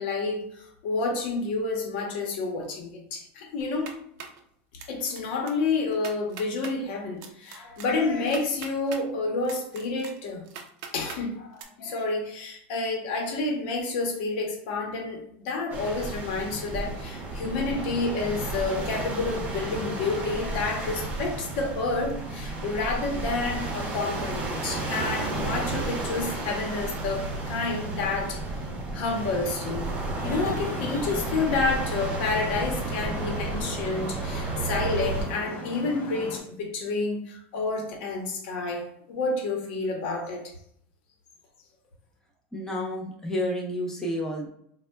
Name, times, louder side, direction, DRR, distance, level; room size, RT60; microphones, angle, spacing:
voice 1, 0.0-4.0 4.9-10.5 10.9-28.4 28.9-29.9 30.2-40.5, left 3 dB, 70° left, 2 dB, 0.9 m, -29 dB
sound 1, 3.6-4.4 4.8-5.2 5.5-5.6 5.9-6.7 7.2-9.0 9.4-11.2 11.6-11.7, right 6 dB, 55° right, 0.5 m, -41 dB
sound 2, 15.7-35.2, right 2 dB, 25° right, 0.8 m, -32 dB
Traffic noise roadway noise, 30.1-36.4, left 1 dB, 30° left, 0.9 m, -39 dB
voice 2, 42.5-44.5, left 1 dB, 10° left, -1 dB, 0.5 m, -30 dB
4.0 x 2.2 x 2.2 m, 0.68 s
supercardioid pair, 140°, 6 cm